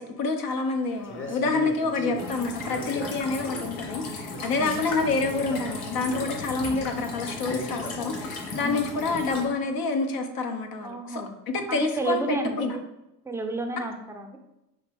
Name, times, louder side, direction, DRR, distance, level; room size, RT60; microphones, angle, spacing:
voice 1, 0.0-12.8, left 3 dB, 50° left, 5 dB, 0.8 m, -28 dB
Male speech man speaking, 1.0-4.0 4.3-8.4, left 1 dB, 25° left, 1.0 m, -39 dB
sound 1, 2.2-9.5, left 3 dB, 75° left, 1.1 m, -36 dB
voice 2, 4.4-4.7 8.6-8.8 10.8-11.3 11.7-12.8 13.2-14.4, right 3 dB, 5° right, 4 dB, 0.6 m, -31 dB
5.1 x 2.9 x 3.4 m, 0.90 s
hypercardioid pair, 55°, 46 cm